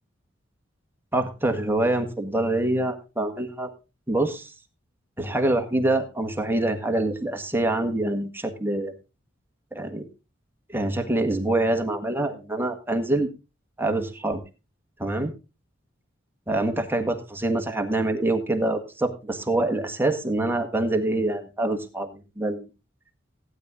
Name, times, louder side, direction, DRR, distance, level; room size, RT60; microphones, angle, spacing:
voice 1, 1.1-3.7 4.1-4.5 5.2-8.9 9.7-10.0 10.7-13.3 13.8-14.4 15.0-15.3 16.5-22.7, right 2 dB, 10° right, 5 dB, 1.6 m, -25 dB
16.0 x 9.7 x 3.7 m, 0.30 s
head